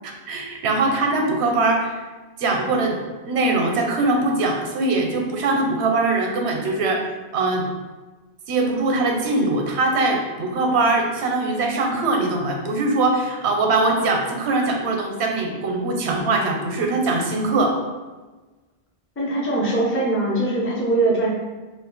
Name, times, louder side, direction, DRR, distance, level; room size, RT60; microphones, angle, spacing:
voice 1, 0.0-2.0 2.4-3.0 3.2-7.1 7.3-7.7 8.5-17.8, right 2 dB, 80° right, 2 dB, 0.8 m, -22 dB
voice 2, 19.2-21.3, right 2 dB, 20° left, -3 dB, 0.3 m, -21 dB
2.6 x 2.4 x 3.7 m, 1.2 s
omnidirectional pair, 1.1 m